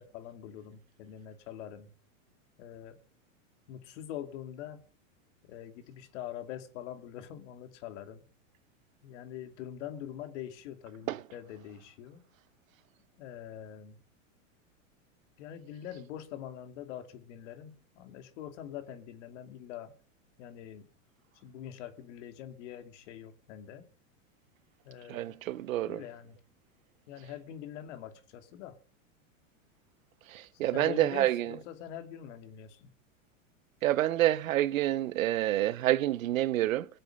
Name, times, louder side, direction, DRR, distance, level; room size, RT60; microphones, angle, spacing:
voice 1, 0.0-1.9 2.6-3.0 3.7-4.8 5.4-8.2 9.0-12.2 13.2-14.0 15.4-19.9 20.4-20.9 21.4-23.9 24.8-25.4 25.8-26.4 27.1-28.8 30.7-32.9, left 10 dB, 65° left, 2.7 m, -44 dB
voice 2, 25.1-26.0 30.3-31.5 33.8-36.9, right 14 dB, 80° right, 0.8 m, -28 dB
22.5 x 7.8 x 5.5 m
hypercardioid pair, 120°, 39 cm